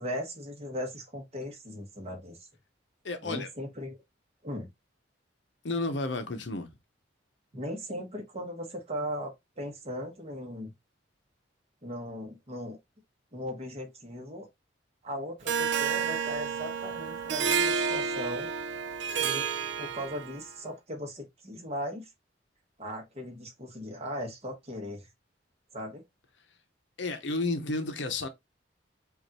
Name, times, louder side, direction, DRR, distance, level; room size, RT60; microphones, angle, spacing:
voice 1, 0.0-2.5 3.2-4.0 4.4-4.7 7.5-10.7 11.8-12.8 13.3-14.5 15.0-18.5 19.2-19.5 19.8-22.1 22.8-25.1 25.7-26.0, equal, 35° right, 1.3 m, -38 dB
voice 2, 3.0-3.5 5.6-6.7 27.0-28.3, left 2 dB, 70° left, 0.8 m, -32 dB
Harp, 15.5-20.5, right 6 dB, 65° right, 0.5 m, -30 dB
5.2 x 2.5 x 2.9 m
head